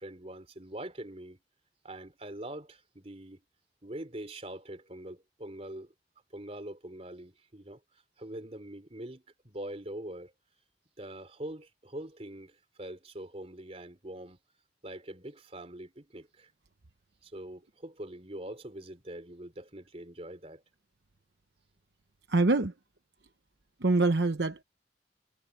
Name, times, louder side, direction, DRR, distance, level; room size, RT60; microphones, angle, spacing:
voice 1, 0.0-1.4 1.8-3.4 3.8-5.9 6.3-7.8 8.2-10.3 11.0-14.4 14.8-16.5 17.2-20.6, right 1 dB, 35° right, 3.8 m, -43 dB
voice 2, 22.3-22.7 23.8-24.6, right 2 dB, 70° right, 1.0 m, -25 dB
head